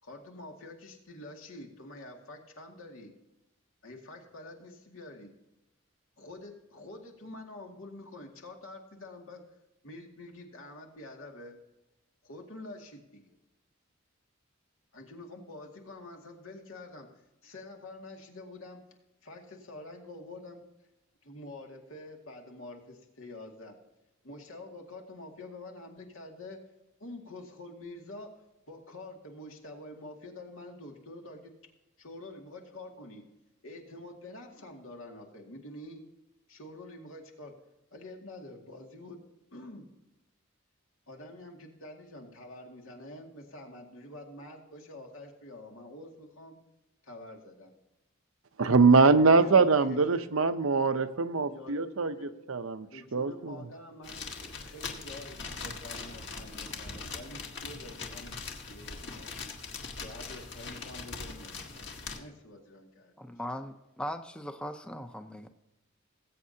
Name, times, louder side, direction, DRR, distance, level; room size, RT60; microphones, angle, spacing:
voice 1, 0.0-3.1 3.8-5.3 6.2-9.4 9.8-11.6 12.2-13.4 14.9-17.1 17.4-18.8 19.2-20.7 21.2-23.8 24.2-26.6 27.0-28.3 28.7-31.5 32.0-33.2 33.6-36.0 36.5-37.5 37.9-39.2 39.5-39.9 41.1-46.6 47.0-47.7 48.6-48.9 49.4-50.3 51.5-52.3 52.9-59.4 60.0-63.1, left 2 dB, 80° left, 1 dB, 2.3 m, -47 dB
voice 2, 48.6-53.7, right 4 dB, 80° right, 10 dB, 0.8 m, -23 dB
sound 1, 54.0-62.2, left 4 dB, 55° left, 1.6 m, -41 dB
voice 3, 63.2-65.5, equal, 5° left, 7 dB, 0.6 m, -39 dB
20.0 x 8.4 x 2.8 m, 0.96 s
head